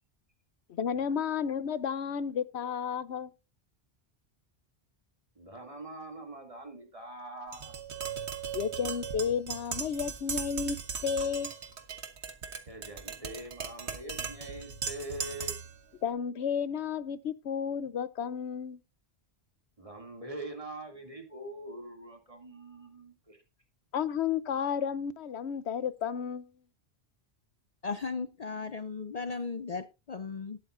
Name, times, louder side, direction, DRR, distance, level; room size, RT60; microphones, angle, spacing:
voice 1, 0.7-3.3 8.5-10.8 11.0-11.5 16.0-18.8 23.9-26.5, left 7 dB, 85° left, 1.0 m, -32 dB
voice 2, 5.4-7.7 12.7-15.5 19.8-23.4, right 1 dB, 30° right, 2.8 m, -43 dB
Tap, 7.5-15.8, right 6 dB, 85° right, 1.6 m, -38 dB
voice 3, 27.8-30.6, left 4 dB, 45° left, 0.6 m, -36 dB
18.5 x 8.6 x 2.6 m
omnidirectional pair, 1.1 m